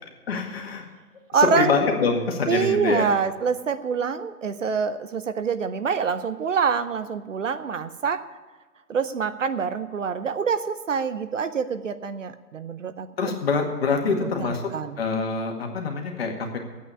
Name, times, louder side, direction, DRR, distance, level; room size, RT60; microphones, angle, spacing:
voice 1, 0.3-0.9 1.3-3.1 13.2-14.6 15.0-16.6, left 4 dB, 40° left, 3 dB, 1.9 m, -25 dB
voice 2, 1.3-1.8 2.5-8.2 8.9-13.4 14.0-15.0, right 6 dB, 55° right, 12 dB, 0.7 m, -26 dB
9.6 x 8.5 x 9.7 m, 1.3 s
hypercardioid pair, 160°, 46 cm